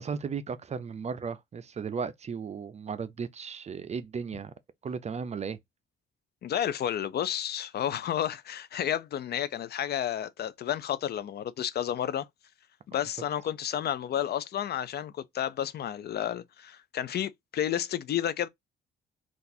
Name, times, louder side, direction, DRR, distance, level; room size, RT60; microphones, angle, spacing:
voice 1, 0.0-4.5 4.8-5.6, right 6 dB, 35° right, 0.5 m, -35 dB
voice 2, 6.4-12.3 12.9-18.5, left 10 dB, 55° left, 0.4 m, -31 dB
3.8 x 2.4 x 2.6 m
cardioid pair, 90°, 20 cm